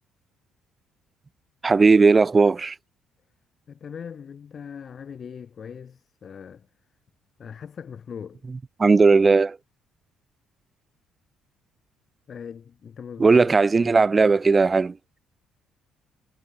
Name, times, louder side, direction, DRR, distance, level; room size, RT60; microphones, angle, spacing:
voice 1, 1.6-2.7 8.8-9.6 13.2-14.9, right 4 dB, 30° right, 0.8 m, -17 dB
voice 2, 3.7-6.7 7.4-8.4 12.3-14.1, left 7 dB, 50° left, 6.9 m, -40 dB
hypercardioid pair, 55°, 0 cm